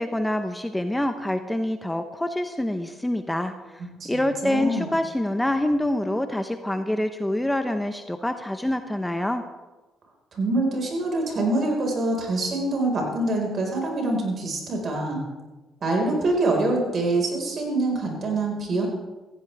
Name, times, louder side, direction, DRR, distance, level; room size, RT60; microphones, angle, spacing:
voice 1, 0.0-9.4, left 1 dB, 10° left, 8 dB, 0.9 m, -26 dB
voice 2, 4.0-4.9 10.3-15.2 15.8-18.9, right 2 dB, 50° right, 0 dB, 5.0 m, -25 dB
16.0 x 15.0 x 3.5 m, 1.2 s
supercardioid pair, 75°, 0 cm